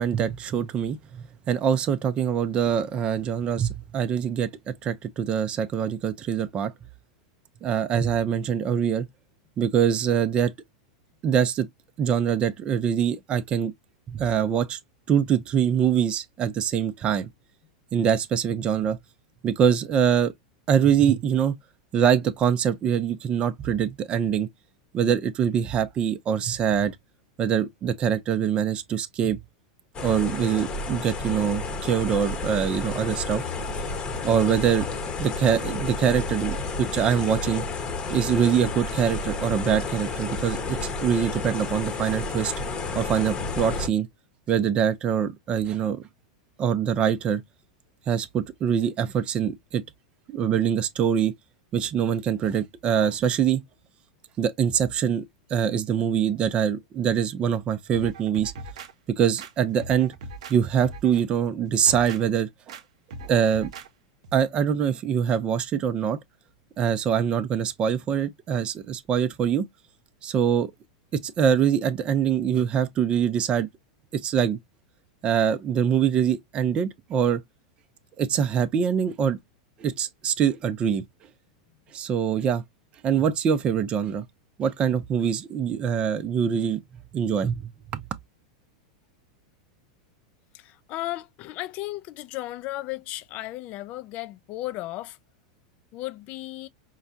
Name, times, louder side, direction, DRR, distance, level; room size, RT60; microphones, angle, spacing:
voice 1, 0.0-6.7 7.6-9.1 9.6-10.5 11.2-11.7 12.0-13.7 14.1-14.8 15.1-17.3 17.9-19.0 19.4-20.3 20.7-21.5 21.9-24.5 24.9-26.9 27.4-29.4 30.0-33.4 34.2-34.9 35.2-37.6 38.1-42.5 42.9-44.1 44.5-46.1 46.6-47.4 48.1-49.8 50.3-51.3 51.7-53.6 54.4-55.2 55.5-58.5 59.1-60.1 60.5-62.7 63.2-63.7 64.3-66.2 66.8-69.7 70.2-70.7 71.2-73.7 74.1-74.6 75.2-77.4 78.2-79.4 79.8-81.0 81.9-82.6 83.0-84.2 84.6-86.8 87.1-88.0, right 8 dB, 30° right, 0.5 m, -24 dB
sound 1, 29.9-43.9, left 3 dB, 25° left, 0.9 m, -31 dB
sound 2, 57.9-58.9 59.4-60.6 60.8-61.2 61.7-62.2 62.7-62.8 63.1-63.9 64.2-64.4, right 2 dB, 75° right, 0.7 m, -40 dB
voice 2, 90.5-95.2 95.9-96.7, left 17 dB, 45° left, 0.4 m, -35 dB
4.7 x 2.2 x 2.5 m
hypercardioid pair, 115°, 3 cm